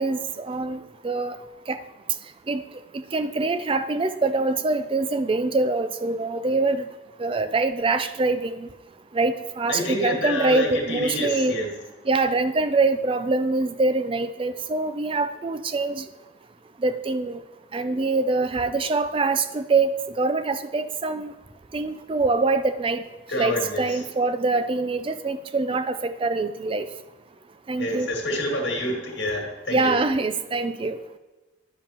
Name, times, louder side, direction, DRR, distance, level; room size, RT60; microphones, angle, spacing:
voice 1, 0.0-1.4 1.7-1.8 2.5-2.6 2.9-6.8 7.2-8.7 9.1-11.5 12.1-16.0 16.8-17.4 17.7-19.9 20.2-21.3 21.7-23.0 23.4-26.9 27.7-28.1 29.7-31.0, right 3 dB, 25° right, 11 dB, 0.4 m, -24 dB
voice 2, 9.7-11.7 23.3-24.0 27.8-29.9, left 1 dB, 65° left, 0 dB, 2.0 m, -28 dB
10.5 x 7.1 x 2.9 m, 1.1 s
head